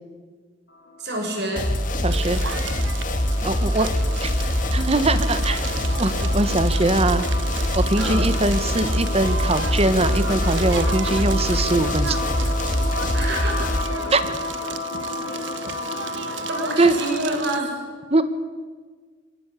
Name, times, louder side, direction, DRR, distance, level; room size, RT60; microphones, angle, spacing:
sound 1, 0.7-17.4, left 2 dB, 60° left, 2.7 m, -33 dB
voice 1, 1.0-1.7 8.0-8.3 13.1-13.7 16.5-17.8, right 1 dB, 60° right, 1 dB, 6.8 m, -27 dB
sound 2, 1.6-13.8, left 1 dB, 45° left, 2.7 m, -24 dB
voice 2, 2.0-2.4 3.4-3.9 4.2-4.3 4.7-5.6 6.0-7.2 7.7-12.2 14.1-14.2 16.8-16.9 18.1-18.2, right 2 dB, 35° right, 12 dB, 1.4 m, -21 dB
Crackle, 2.1-17.6, right 6 dB, 80° right, 1.4 m, -35 dB
24.5 x 17.5 x 8.5 m, 1.5 s
head